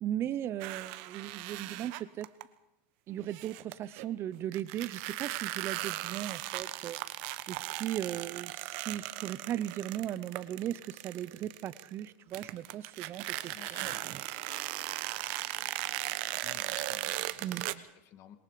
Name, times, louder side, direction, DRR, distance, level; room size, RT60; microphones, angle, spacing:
voice 1, 0.0-2.3 3.1-14.4 17.4-17.8, right 11 dB, 35° right, 17 dB, 0.8 m, -38 dB
sound 1, 0.6-2.4 3.3-4.0 4.5-12.1 12.3-17.7, right 17 dB, 60° right, 1.1 m, -38 dB
voice 2, 13.5-14.1 16.4-18.4, left 11 dB, 45° left, 10 dB, 2.1 m, -53 dB
26.5 x 21.5 x 5.1 m, 0.87 s
supercardioid pair, 135°, 7 cm